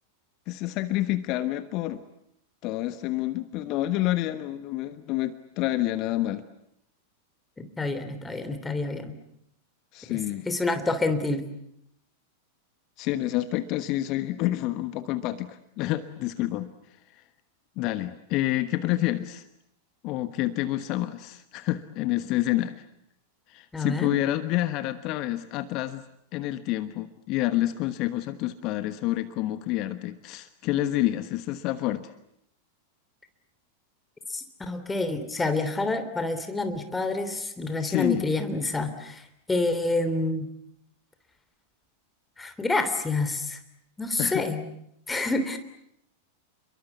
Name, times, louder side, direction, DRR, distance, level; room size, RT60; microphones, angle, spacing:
voice 1, 0.5-2.0 2.6-6.4 9.9-10.5 13.0-16.7 17.1-17.2 17.8-19.4 20.0-22.8 23.5-26.0 26.3-32.0 37.8-38.3 44.2-44.5, left 15 dB, 40° left, 12 dB, 1.3 m, -28 dB
voice 2, 7.6-9.2 10.1-10.2 10.4-11.4 23.7-24.1 34.3-39.2 39.5-40.5 42.4-43.6 44.0-44.7 45.1-45.6, left 2 dB, 10° left, 9 dB, 3.2 m, -28 dB
30.0 x 22.5 x 8.4 m, 0.76 s
figure-of-eight pair, 90°, 0 cm